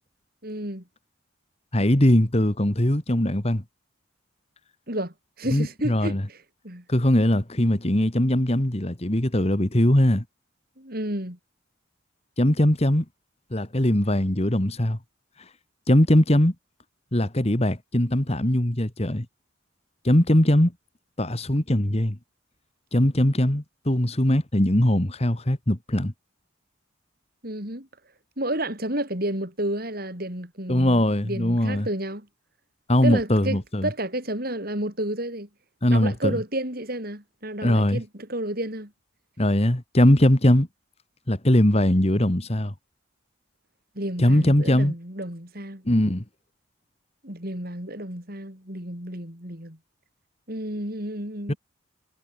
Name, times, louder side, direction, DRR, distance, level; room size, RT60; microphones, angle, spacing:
voice 1, 0.4-0.8 4.9-6.4 6.6-6.8 10.8-11.4 27.4-27.9 28.4-32.3 33.0-35.5 35.9-38.9 43.9-45.8 47.2-49.8 50.5-51.6, right 1 dB, 45° right, 6.8 m, -31 dB
voice 2, 1.7-3.6 5.5-6.2 6.9-10.2 12.4-13.1 13.5-15.0 15.9-16.5 17.1-19.3 20.0-20.7 21.2-22.2 22.9-26.1 30.7-31.9 32.9-33.9 35.8-36.4 37.6-38.0 39.4-40.7 41.3-42.7 44.2-44.9 45.9-46.2 51.5-51.6, left 1 dB, 30° left, 1.9 m, -21 dB
head